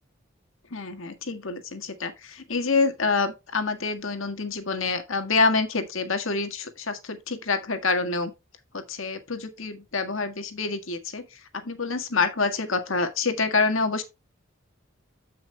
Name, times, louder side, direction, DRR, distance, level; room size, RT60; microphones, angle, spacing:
voice 1, 0.7-8.3 8.7-14.0, left 4 dB, 65° left, 1.8 m, -27 dB
14.5 x 5.8 x 2.3 m
head